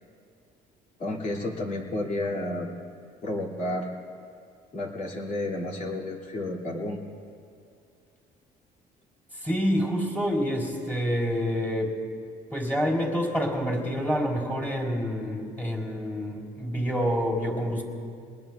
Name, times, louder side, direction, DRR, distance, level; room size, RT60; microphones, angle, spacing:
voice 1, 1.0-2.7 3.2-3.9 4.7-7.0, left 1 dB, 45° left, -1 dB, 2.6 m, -31 dB
voice 2, 9.3-11.9 12.5-17.8, equal, 10° left, -1 dB, 3.7 m, -27 dB
25.0 x 20.0 x 2.4 m, 2.3 s
cardioid pair, 110°, 17 cm